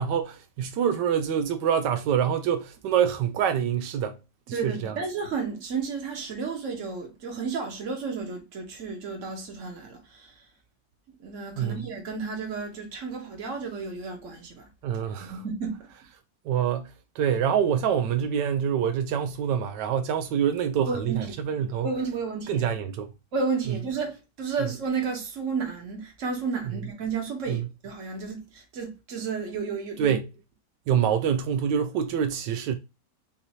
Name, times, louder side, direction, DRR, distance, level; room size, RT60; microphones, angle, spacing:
voice 1, 0.0-4.2 4.5-5.0 11.6-11.8 14.8-15.4 16.4-21.9 22.5-23.1 27.5-27.6 30.0-30.3 30.9-32.7, right 8 dB, 85° right, 1.2 m, -26 dB
voice 2, 4.5-10.3 11.2-14.7 15.2-15.9 20.8-21.3 21.8-22.6 23.3-30.1, right 5 dB, 50° right, 1.5 m, -32 dB
5.5 x 2.7 x 2.9 m
omnidirectional pair, 1.8 m